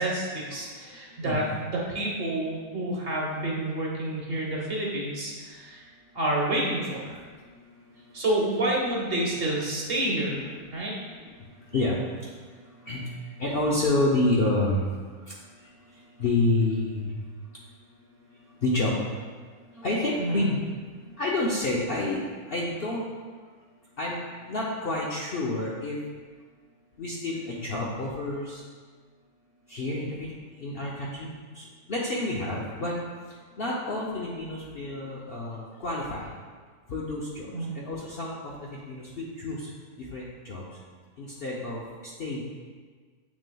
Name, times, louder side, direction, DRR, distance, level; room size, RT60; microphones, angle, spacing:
voice 1, 0.0-5.8 6.1-7.2 8.1-10.5 10.7-10.9 20.2-20.5 37.5-37.7, right 1 dB, 45° right, -3 dB, 1.1 m, -29 dB
voice 2, 13.4-14.8 15.3-15.4 16.2-17.2 18.6-18.9 19.8-20.6 21.2-22.2 22.5-23.0 24.0-24.2 24.5-26.0 27.0-28.6 29.7-32.9 33.6-36.3 36.9-37.5 37.7-39.7 40.0-40.6 41.2-41.8 42.2-42.4, left 2 dB, 55° left, -5 dB, 0.7 m, -29 dB
7.2 x 6.1 x 2.3 m, 1.6 s
omnidirectional pair, 1.6 m